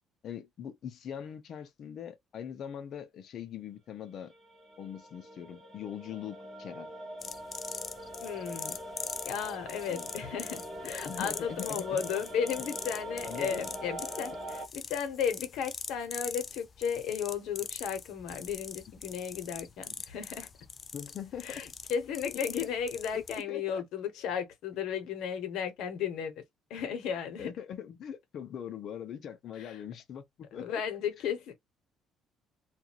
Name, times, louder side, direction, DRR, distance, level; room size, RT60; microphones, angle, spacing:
voice 1, 0.2-4.3 4.8-6.9 9.9-10.1 11.0-12.0 13.2-13.7 20.9-21.6 23.1-23.8 27.4-30.8, left 9 dB, 50° left, 0.7 m, -42 dB
sound 1, 4.3-14.7, equal, 10° right, 1.2 m, -43 dB
sound 2, 7.2-23.4, left 5 dB, 25° left, 0.3 m, -43 dB
voice 2, 8.2-8.8 9.2-20.5 21.4-26.4 26.7-27.5 29.5-29.8 30.5-31.6, left 7 dB, 75° left, 1.1 m, -34 dB
2.6 x 2.5 x 2.9 m
cardioid pair, 155°, 0 cm